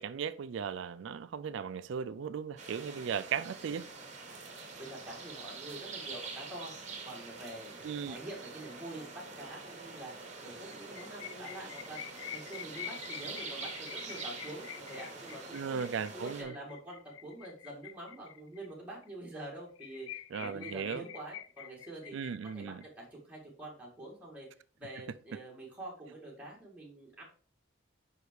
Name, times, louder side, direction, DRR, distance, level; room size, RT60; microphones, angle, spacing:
voice 1, 0.0-3.9 7.8-8.2 15.5-16.5 20.3-21.0 22.1-22.8, right 7 dB, 70° right, 0.3 m, -37 dB
sound 1, 2.6-16.4, right 4 dB, 35° right, 1.2 m, -45 dB
voice 2, 4.8-6.7 7.0-15.8 16.1-22.2 22.5-24.5 24.8-27.2, right 1 dB, 5° right, 2.0 m, -46 dB
sound 2, 10.7-18.7 19.0-19.1 19.4-19.5 19.8-22.9, left 11 dB, 90° left, 0.4 m, -47 dB
5.3 x 5.0 x 4.6 m
head